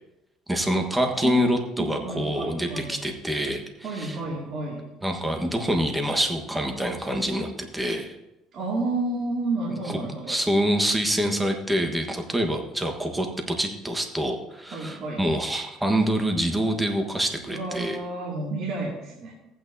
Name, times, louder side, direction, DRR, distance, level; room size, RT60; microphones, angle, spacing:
voice 1, 0.5-4.2 5.0-8.1 9.9-10.0 10.3-18.0, right 1 dB, 10° right, 3 dB, 1.3 m, -26 dB
voice 2, 1.2-2.9 3.8-4.8 8.5-10.4 14.7-15.2 17.5-19.3, right 2 dB, 50° right, -5 dB, 2.4 m, -30 dB
15.0 x 8.8 x 2.7 m, 0.93 s
cardioid pair, 110°, 0 cm